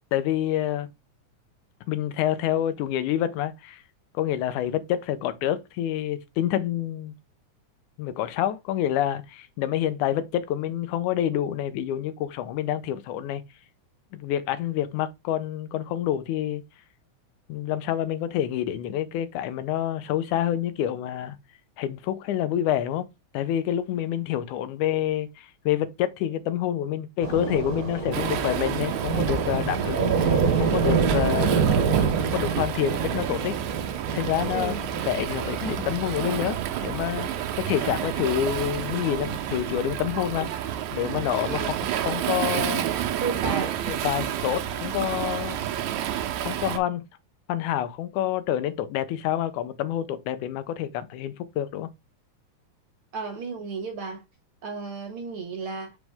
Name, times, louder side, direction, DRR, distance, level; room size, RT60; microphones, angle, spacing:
voice 1, 0.1-0.9 1.9-3.8 4.1-7.1 8.0-13.4 14.1-16.6 17.5-21.4 21.8-23.1 23.3-31.7 32.2-33.5 34.1-34.7 35.1-37.3 37.7-40.5 40.9-41.8 42.0-42.9 43.9-45.6 46.4-47.0 47.5-51.9, left 11 dB, 90° left, 2.2 m, -27 dB
Thunder / Rain, 27.2-40.0, right 5 dB, 40° right, 1.5 m, -28 dB
Waves surf, 28.1-46.8, right 10 dB, 80° right, 2.2 m, -30 dB
voice 2, 43.2-43.7 53.1-54.2 54.6-56.0, right 4 dB, 55° right, 1.8 m, -33 dB
6.2 x 5.3 x 3.5 m
omnidirectional pair, 3.4 m